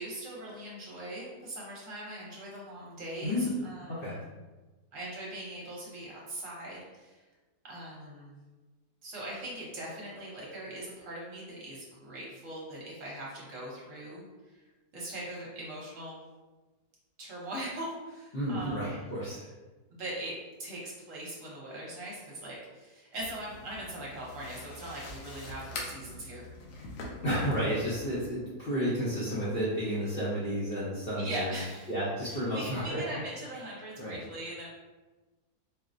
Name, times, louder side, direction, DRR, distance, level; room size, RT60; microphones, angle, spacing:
voice 1, 0.0-4.2 4.9-7.2 7.6-8.4 9.0-16.2 17.2-19.1 19.9-26.5 31.2-31.9 32.2-34.7, right 1 dB, 60° right, -5 dB, 1.1 m, -41 dB
voice 2, 18.3-19.5 27.2-31.5 31.9-33.0 34.0-34.2, equal, 50° left, -9 dB, 0.7 m, -31 dB
sound 1, 23.1-28.3, left 2 dB, 85° left, 1.2 m, -44 dB
4.3 x 2.0 x 2.5 m, 1.2 s
omnidirectional pair, 1.7 m